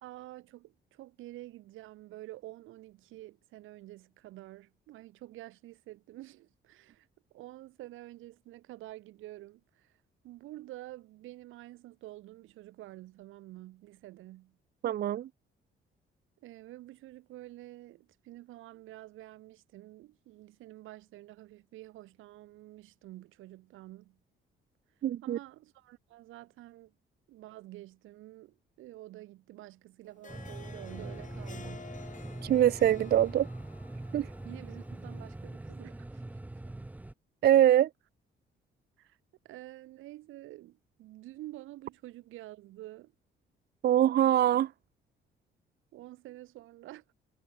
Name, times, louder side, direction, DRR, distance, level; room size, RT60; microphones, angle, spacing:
voice 1, 0.0-7.1 7.3-9.9 10.2-14.6 16.4-24.2 25.2-26.9 27.3-31.9 34.4-36.2 39.0-39.2 39.4-43.1 45.9-47.0, right 16 dB, 90° right, 1.5 m, -49 dB
voice 2, 14.8-15.3 25.0-25.4 32.4-33.5 34.1-34.3 37.4-37.9 43.8-44.7, right 11 dB, 55° right, 0.5 m, -23 dB
Harp, 30.1-35.5, left 6 dB, 40° left, 3.8 m, -51 dB
sound 1, 30.3-37.1, right 2 dB, 10° right, 0.5 m, -43 dB
cardioid pair, 90°, 20 cm